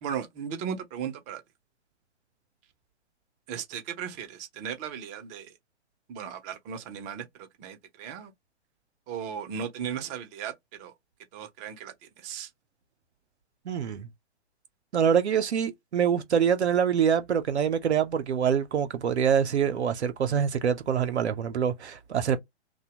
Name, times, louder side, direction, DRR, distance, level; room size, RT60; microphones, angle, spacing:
voice 1, 0.0-1.4 3.5-5.5 6.1-8.3 9.1-10.9 11.3-12.5, right 8 dB, 20° right, 0.7 m, -36 dB
voice 2, 13.7-14.1 14.9-22.4, right 7 dB, 70° right, 0.7 m, -25 dB
2.8 x 2.2 x 2.8 m
figure-of-eight pair, 120°, 34 cm